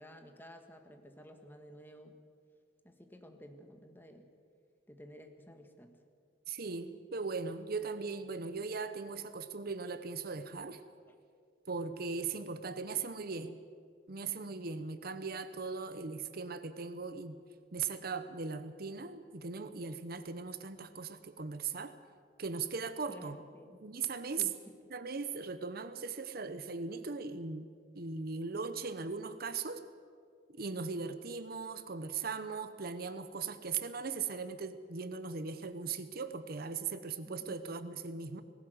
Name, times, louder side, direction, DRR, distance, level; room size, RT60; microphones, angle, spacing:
voice 1, 0.0-2.2 2.8-4.3 4.9-5.9 11.1-11.2 23.1-23.8 24.4-24.5 37.2-37.6, equal, 10° left, 5 dB, 1.6 m, -53 dB
voice 2, 6.5-10.8 11.7-13.6 14.1-17.4 17.7-21.9 22.4-23.4 23.8-24.4 24.9-27.7 27.9-29.8 30.5-38.4, right 5 dB, 55° right, 11 dB, 0.9 m, -39 dB
19.5 x 17.0 x 8.0 m, 2.2 s
head